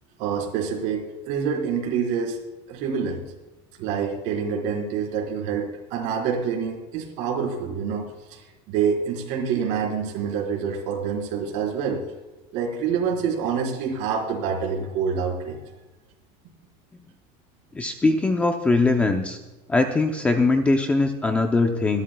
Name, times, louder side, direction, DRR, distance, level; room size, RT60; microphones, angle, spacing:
voice 1, 0.2-2.4 2.7-3.2 3.8-8.4 8.7-12.0 12.5-15.6, right 6 dB, 50° right, -1 dB, 4.3 m, -26 dB
voice 2, 17.7-19.4 19.7-22.0, left 3 dB, 10° left, 5 dB, 0.6 m, -21 dB
25.5 x 12.5 x 2.3 m, 1.1 s
cardioid pair, 180°, 16 cm